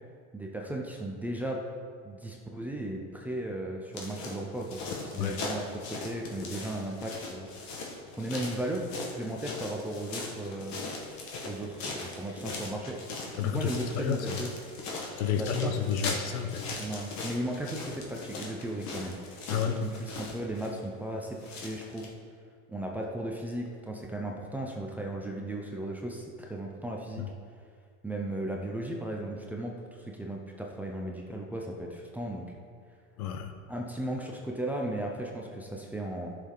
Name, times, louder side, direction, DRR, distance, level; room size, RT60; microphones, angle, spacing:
voice 1, 0.3-1.6 2.0-7.5 8.2-10.8 11.4-13.0 13.4-14.5 15.4-15.7 16.8-19.2 19.4-22.1 22.7-27.2 28.0-32.5 33.7-36.4, right 1 dB, 5° right, -1 dB, 0.6 m, -36 dB
sound 1, 3.9-22.1, left 3 dB, 40° left, 1.7 m, -40 dB
voice 2, 13.4-13.7 13.9-14.4 15.2-16.6 19.5-19.8 27.2-27.3 33.2-33.5, left 8 dB, 80° left, 7 dB, 1.1 m, -30 dB
14.0 x 6.5 x 3.9 m, 2.1 s
supercardioid pair, 145°, 43 cm